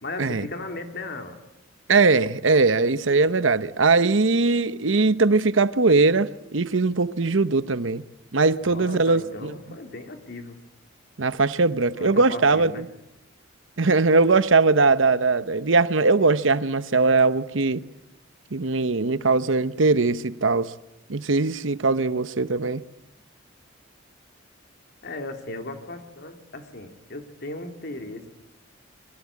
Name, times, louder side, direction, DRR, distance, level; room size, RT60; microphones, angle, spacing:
voice 1, 0.0-1.4 8.6-10.7 11.9-12.9 25.0-28.3, left 2 dB, 55° left, 3.1 m, -36 dB
voice 2, 1.9-8.0 8.3-9.5 11.2-12.9 13.8-17.8 18.5-20.7 21.1-22.8, right 3 dB, 70° right, 0.9 m, -20 dB
27.0 x 23.0 x 8.5 m
head